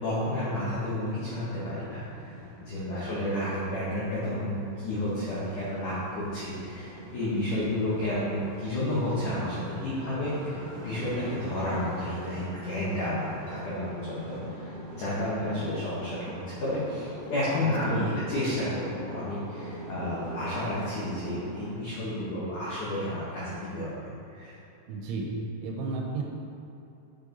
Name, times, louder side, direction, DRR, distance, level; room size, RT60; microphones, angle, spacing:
voice 1, 0.0-10.6 10.8-24.6, left 1 dB, 75° left, -9 dB, 1.8 m, -31 dB
sound 1, 1.9-21.7, right 1 dB, 50° right, 2.8 m, -42 dB
voice 2, 2.7-3.2 7.3-7.7 15.1-15.6 17.6-18.3 24.9-25.3 25.6-26.2, right 3 dB, 80° right, 0 dB, 3.1 m, -35 dB
7.6 x 7.0 x 3.9 m, 2.9 s
omnidirectional pair, 5.8 m